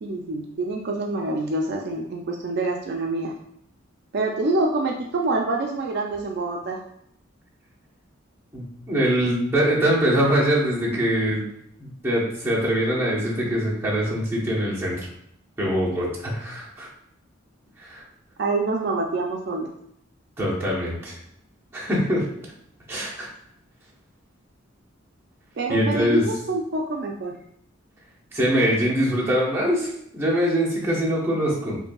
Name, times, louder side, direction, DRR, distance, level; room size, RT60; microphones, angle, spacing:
voice 1, 0.0-3.3 4.1-6.8 18.4-19.7 25.6-27.4, right 2 dB, 55° right, 1 dB, 0.4 m, -26 dB
voice 2, 8.5-11.4 11.8-15.1 15.6-16.9 17.8-18.0 20.4-21.2 21.7-22.3 22.9-23.3 25.7-26.3 28.3-31.8, equal, 10° right, -6 dB, 0.9 m, -23 dB
5.3 x 2.6 x 2.3 m, 0.72 s
head